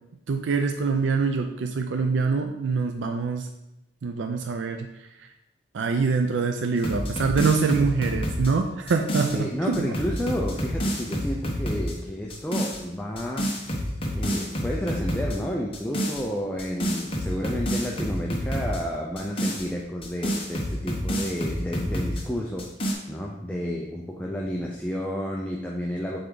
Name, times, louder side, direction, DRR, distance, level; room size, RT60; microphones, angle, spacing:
voice 1, 0.3-3.5 4.0-4.9 5.2-5.3 5.7-9.5 9.8-9.9, right 4 dB, 85° right, 5 dB, 0.4 m, -24 dB
sound 1, 6.8-9.4 9.7-11.9 12.3-12.8 13.2-15.4 15.7-16.2 16.6-18.8 19.2-22.2 22.6-22.9, equal, 30° left, 1.0 m, -28 dB
voice 2, 9.3-13.8 14.1-22.7 23.1-26.2, equal, 5° left, -2 dB, 0.5 m, -31 dB
7.8 x 3.5 x 3.8 m, 0.92 s
head